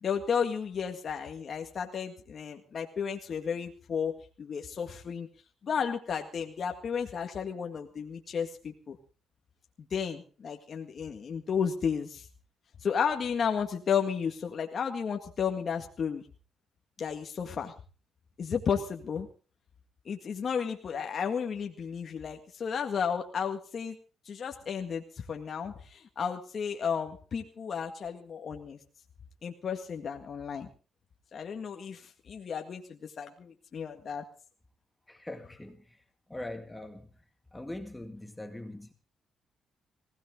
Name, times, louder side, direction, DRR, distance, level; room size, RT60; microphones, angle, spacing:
voice 1, 0.0-5.3 5.6-9.0 9.8-12.3 12.8-16.2 17.0-17.7 18.4-19.3 20.1-24.0 24.3-28.8 29.4-30.7 31.3-34.2, left 7 dB, 50° left, 1.9 m, -33 dB
voice 2, 35.1-36.0 36.3-37.1 37.5-38.9, left 1 dB, 10° left, 2.1 m, -42 dB
19.5 x 17.0 x 3.8 m
cardioid pair, 90°, 0 cm